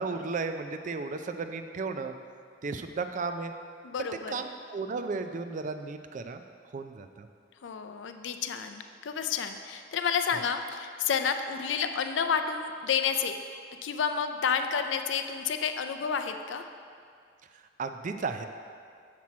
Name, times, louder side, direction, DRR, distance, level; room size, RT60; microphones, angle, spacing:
voice 1, 0.0-2.1 2.6-3.5 4.0-6.4 6.7-7.3 17.8-18.5, right 4 dB, 45° right, 8 dB, 0.4 m, -34 dB
voice 2, 3.8-4.5 7.6-13.4 13.8-16.6, left 6 dB, 80° left, 7 dB, 0.4 m, -30 dB
7.4 x 6.0 x 4.2 m, 2.2 s
head